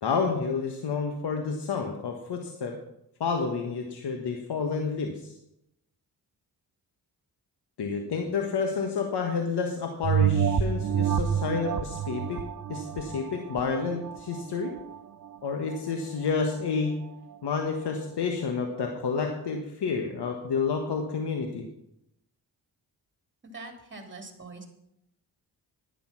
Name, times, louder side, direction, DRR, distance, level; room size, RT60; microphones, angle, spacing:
voice 1, 0.0-2.8 3.2-5.3 7.8-12.4 12.7-14.7 15.4-17.0 17.4-21.6, left 5 dB, 75° left, 3 dB, 1.5 m, -29 dB
sound 1, 10.0-15.0 15.5-15.6, right 8 dB, 50° right, 0.7 m, -28 dB
voice 2, 23.5-24.7, right 3 dB, 30° right, 4 dB, 3.1 m, -43 dB
11.0 x 10.0 x 5.8 m, 0.80 s
cardioid pair, 65°, 40 cm